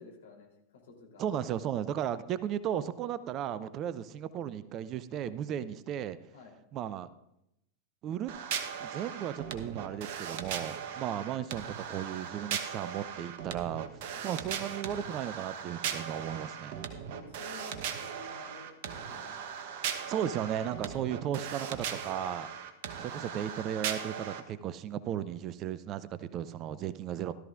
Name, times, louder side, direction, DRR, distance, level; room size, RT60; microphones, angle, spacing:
voice 1, 0.0-1.2 6.3-6.6 14.1-14.3 17.1-19.4 21.0-21.2, left 4 dB, 60° left, 0 dB, 3.4 m, -52 dB
voice 2, 1.2-6.2 6.7-7.1 8.0-8.3 8.8-13.9 14.2-16.9 20.1-22.5 23.0-27.3, right 10 dB, 35° right, 16 dB, 0.5 m, -35 dB
sound 1, 8.3-24.4, right 8 dB, 50° right, 1.0 m, -38 dB
16.5 x 12.5 x 2.5 m, 0.83 s
figure-of-eight pair, 90°, 0 cm